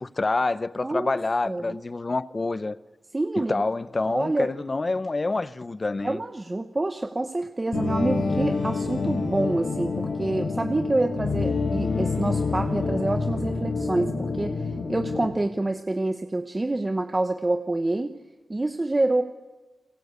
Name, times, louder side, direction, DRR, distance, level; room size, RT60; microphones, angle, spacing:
voice 1, 0.0-2.8 3.4-6.2, left 3 dB, 30° left, 0.8 m, -27 dB
voice 2, 0.8-1.2 1.5-1.8 3.1-3.6 4.1-4.5 6.0-18.2 18.5-19.2, right 2 dB, 20° right, 1.0 m, -27 dB
sound 1, 7.7-15.3, left 4 dB, 75° left, 6.6 m, -27 dB
29.0 x 22.0 x 8.3 m
wide cardioid pair, 125°, 0 cm